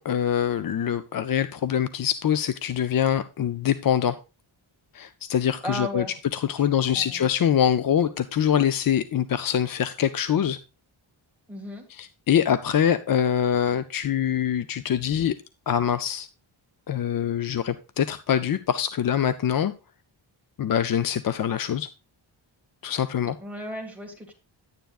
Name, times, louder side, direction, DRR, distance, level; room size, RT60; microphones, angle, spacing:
voice 1, 0.0-4.2 4.9-6.0 6.3-10.6 11.9-15.4 15.7-16.3 16.9-19.7 20.6-21.9 22.8-23.4, left 9 dB, 45° left, 0.4 m, -24 dB
voice 2, 5.6-6.1 6.6-7.2 11.5-11.8 23.4-24.3, equal, 5° right, 1.8 m, -35 dB
10.0 x 9.3 x 2.4 m
wide cardioid pair, 160°, 49 cm